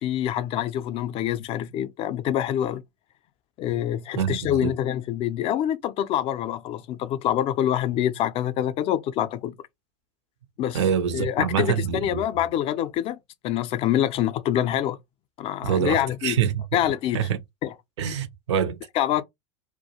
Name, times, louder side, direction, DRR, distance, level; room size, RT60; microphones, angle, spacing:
voice 1, 0.0-2.8 3.6-9.5 10.6-10.8 11.1-13.2 13.4-15.0 15.4-16.4 16.7-17.3 17.6-17.7 19.0-19.2, left 11 dB, 40° left, 0.4 m, -26 dB
voice 2, 4.1-4.8 10.7-12.2 15.6-16.8 17.1-17.4 18.0-18.9, right 8 dB, 75° right, 0.5 m, -25 dB
2.2 x 2.1 x 2.8 m
hypercardioid pair, 95°, 15 cm